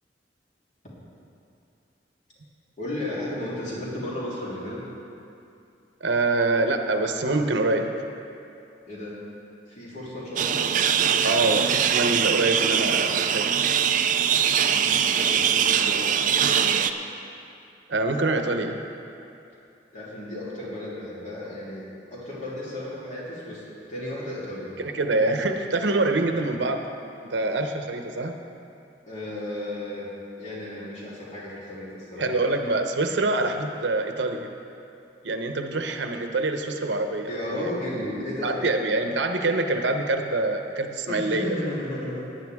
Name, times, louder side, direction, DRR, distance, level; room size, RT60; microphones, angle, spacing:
voice 1, 2.8-4.8 8.9-9.2 9.7-10.6 14.6-16.1 16.4-16.8 19.9-21.8 22.1-24.7 26.0-26.2 29.1-30.1 30.4-32.3 37.3-38.6 41.1-42.2, left 1 dB, 45° left, -8 dB, 3.3 m, -34 dB
voice 2, 6.0-7.9 11.2-13.7 17.9-18.8 24.8-26.8 27.3-28.3 32.2-34.5 35.2-37.7 38.4-41.6, right 2 dB, 90° right, 5 dB, 0.9 m, -25 dB
sound 1, 10.4-16.9, right 8 dB, 45° right, 0.4 m, -22 dB
17.0 x 9.8 x 3.6 m, 2.7 s
head